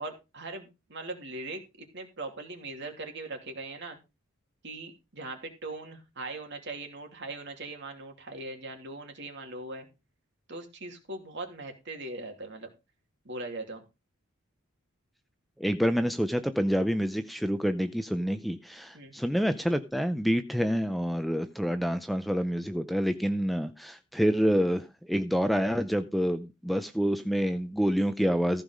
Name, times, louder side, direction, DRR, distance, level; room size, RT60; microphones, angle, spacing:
voice 1, 0.0-4.0 4.6-9.9 10.5-12.7 13.2-13.8 18.9-19.1, right 2 dB, 55° right, 2.8 m, -40 dB
voice 2, 15.6-28.6, equal, ahead, 0.5 m, -27 dB
14.5 x 5.6 x 5.1 m
head